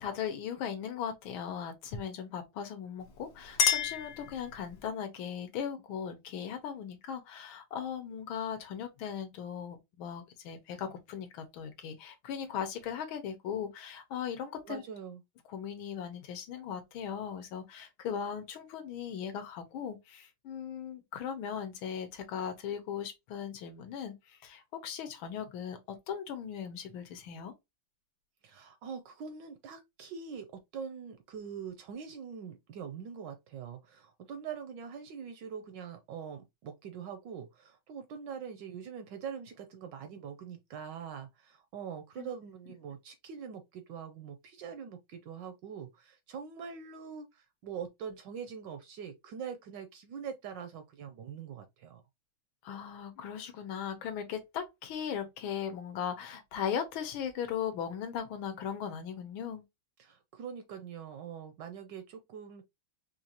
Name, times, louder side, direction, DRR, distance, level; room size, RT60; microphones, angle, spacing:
voice 1, 0.0-14.8 15.5-25.8 26.1-27.5 42.2-42.3 52.6-59.6, left 8 dB, 80° left, 1.5 m, -38 dB
Chink clink, 3.0-4.9, left 8 dB, 65° left, 1.2 m, -31 dB
voice 2, 14.6-15.2 28.4-52.0 60.0-62.6, right 7 dB, 75° right, 1.0 m, -43 dB
4.4 x 2.4 x 2.7 m
omnidirectional pair, 2.3 m